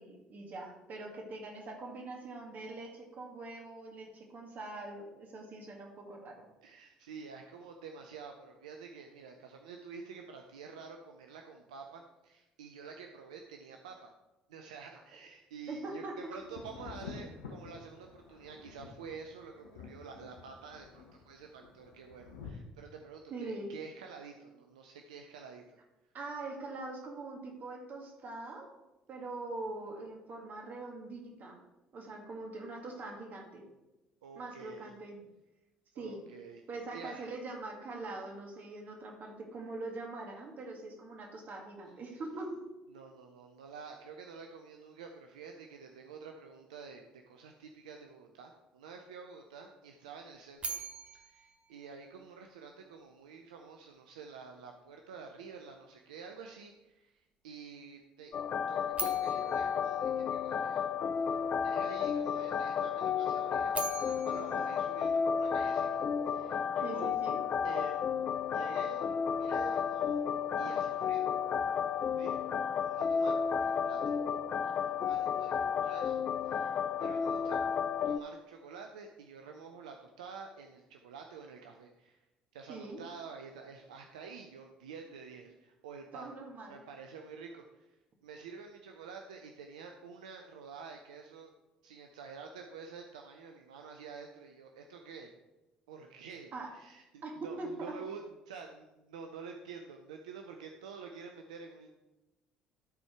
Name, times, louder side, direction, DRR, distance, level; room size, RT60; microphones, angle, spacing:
voice 1, 0.0-6.5 15.7-16.4 23.3-23.7 26.1-28.7 29.1-31.6 31.9-33.6 34.3-35.2 36.0-36.2 36.7-42.6 66.8-67.4 82.7-83.0 86.1-86.8 96.5-96.7 97.2-98.0, right 2 dB, 50° right, 1 dB, 2.3 m, -43 dB
voice 2, 6.6-14.1 14.5-25.8 34.2-34.9 35.9-36.6 36.9-37.3 42.9-50.8 51.1-58.3 58.7-60.8 61.2-67.1 67.6-68.1 68.5-70.2 70.6-71.3 72.0-72.4 72.8-74.2 74.6-76.2 76.4-77.6 78.1-82.2 82.5-86.3 86.7-91.5 91.8-95.3 95.9-101.9, right 5 dB, 80° right, 4 dB, 0.5 m, -49 dB
Thunder, 16.4-22.5, left 5 dB, 80° left, 1.0 m, -49 dB
sound 1, 50.6-52.7 58.9-61.1 63.5-65.9, right 4 dB, 30° right, 1.1 m, -43 dB
sound 2, 58.3-78.2, left 7 dB, 45° left, 0.5 m, -32 dB
13.0 x 4.4 x 4.6 m, 1.0 s
hypercardioid pair, 55°, 4 cm